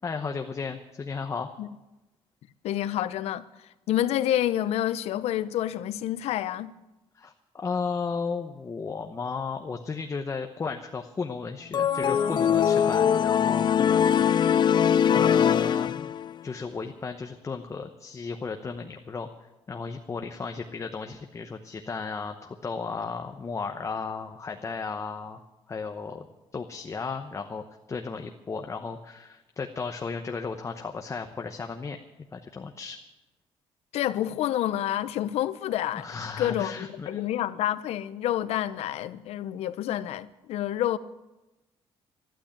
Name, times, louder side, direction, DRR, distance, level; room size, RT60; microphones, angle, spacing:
voice 1, 0.0-1.5 7.1-14.8 15.1-16.1 16.4-19.3 19.7-25.4 25.7-26.3 26.5-32.0 32.3-33.0 35.9-37.3, left 5 dB, 30° left, 0.9 m, -34 dB
voice 2, 2.6-3.5 3.9-6.7 33.9-36.1 36.4-41.0, left 12 dB, 85° left, 0.7 m, -28 dB
sound 1, 11.7-16.4, left 8 dB, 45° left, 0.5 m, -22 dB
12.5 x 11.5 x 8.8 m
cardioid pair, 125°, 10 cm